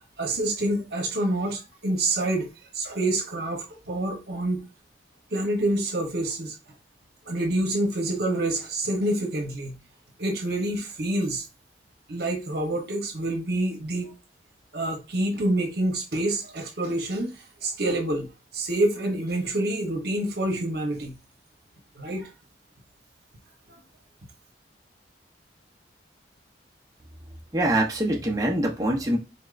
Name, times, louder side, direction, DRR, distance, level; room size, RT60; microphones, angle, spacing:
voice 1, 0.2-2.5 2.7-4.7 5.3-6.6 7.3-9.8 10.2-11.4 12.1-14.1 14.7-21.2 22.0-22.3, right 1 dB, 55° right, 1.0 m, -27 dB
voice 2, 27.5-29.2, right 1 dB, 20° right, 0.8 m, -24 dB
4.2 x 3.5 x 2.5 m
head